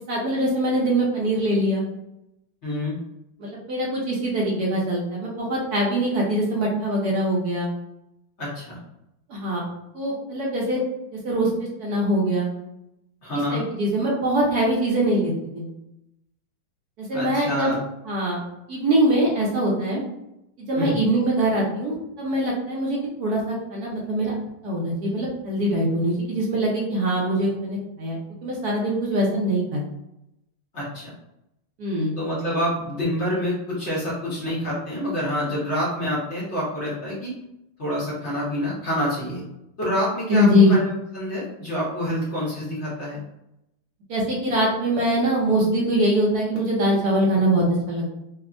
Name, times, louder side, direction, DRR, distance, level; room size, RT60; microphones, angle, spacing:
voice 1, 0.1-1.8 3.4-7.7 9.3-9.7 9.9-10.8 11.1-12.5 13.5-15.7 17.0-17.7 18.0-18.4 18.7-20.0 20.6-24.3 24.6-29.8 31.8-32.1 40.3-40.7 44.1-48.2, right 1 dB, 70° right, -3 dB, 0.9 m, -23 dB
voice 2, 2.6-3.0 8.4-8.8 13.2-13.6 17.1-17.8 20.8-21.0 30.7-31.1 32.2-37.3 37.8-39.4 39.8-43.2, equal, 50° left, -8 dB, 0.9 m, -27 dB
3.4 x 2.0 x 2.4 m, 0.86 s
omnidirectional pair, 2.3 m